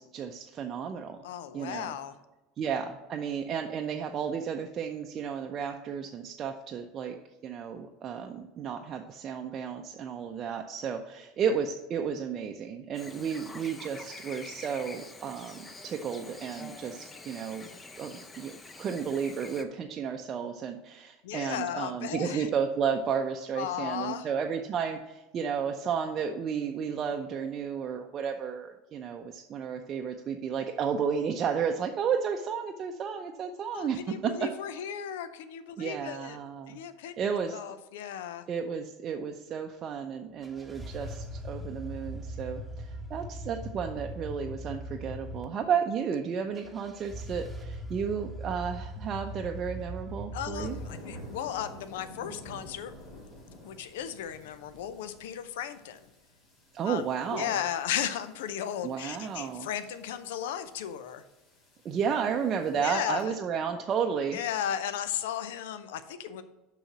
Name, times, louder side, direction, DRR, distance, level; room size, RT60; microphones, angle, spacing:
voice 1, 0.0-1.2 1.5-2.0 2.6-7.1 7.4-17.7 18.0-18.5 18.8-34.5 35.8-36.8 37.2-37.6 38.5-50.8 56.7-57.6 58.8-59.7 61.8-64.4, right 7 dB, 40° right, 3 dB, 0.6 m, -32 dB
voice 2, 1.2-2.2 21.2-22.5 23.6-24.3 33.7-36.4 36.7-37.2 37.5-38.4 50.3-52.9 53.6-56.0 56.9-61.2 62.8-63.3 64.3-66.4, left 9 dB, 65° left, 11 dB, 0.6 m, -35 dB
Chirp tweet / Buzz, 12.9-19.6, left 3 dB, 20° left, 0.8 m, -46 dB
sound 1, 40.4-45.4 46.6-50.9, equal, 5° right, 1.2 m, -40 dB
sound 2, 50.6-63.2, left 1 dB, 45° left, 2.3 m, -51 dB
6.3 x 5.7 x 6.0 m, 1.0 s
figure-of-eight pair, 75°, 0 cm